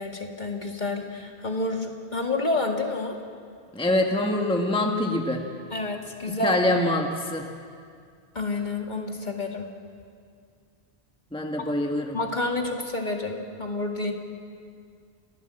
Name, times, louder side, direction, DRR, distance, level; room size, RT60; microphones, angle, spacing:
voice 1, 0.0-3.1 5.7-6.6 8.4-9.7 12.1-14.1, left 2 dB, 45° left, 2 dB, 2.1 m, -29 dB
voice 2, 3.7-5.5 6.4-7.5 11.3-12.2, left 1 dB, 5° left, 2 dB, 1.3 m, -25 dB
28.5 x 14.0 x 7.7 m, 2.2 s
omnidirectional pair, 1.0 m